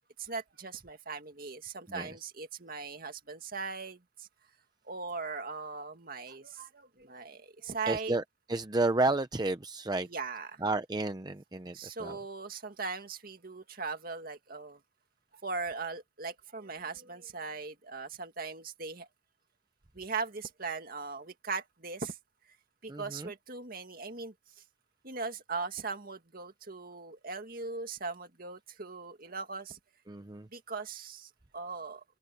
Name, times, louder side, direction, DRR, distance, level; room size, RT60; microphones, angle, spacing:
voice 1, 0.2-4.3 4.9-8.2 10.0-10.6 11.7-14.8 15.4-19.1 20.0-22.2 22.8-24.3 25.0-29.8 30.5-32.0, right 4 dB, 50° right, 2.1 m, -39 dB
voice 2, 7.9-8.2 8.5-10.1 10.6-12.2 22.9-23.3 30.1-30.5, right 2 dB, 20° right, 0.6 m, -31 dB
open air
head